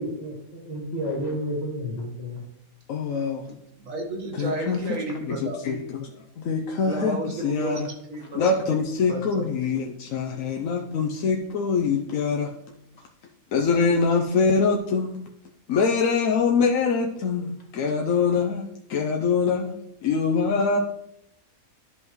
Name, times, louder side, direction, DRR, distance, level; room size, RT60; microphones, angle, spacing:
voice 1, 0.0-2.4, equal, 30° left, -2 dB, 2.0 m, -31 dB
voice 2, 2.9-3.4 4.3-4.8 5.3-6.1 6.4-7.2 7.4-7.9 8.3-12.5 13.5-15.2 15.7-19.7 20.0-20.8, left 5 dB, 70° left, 2 dB, 1.1 m, -24 dB
voice 3, 3.5-5.6 6.9-7.8 8.1-8.7 9.1-9.5, right 1 dB, 65° right, 0 dB, 1.8 m, -32 dB
11.0 x 5.5 x 3.1 m, 0.78 s
omnidirectional pair, 1.5 m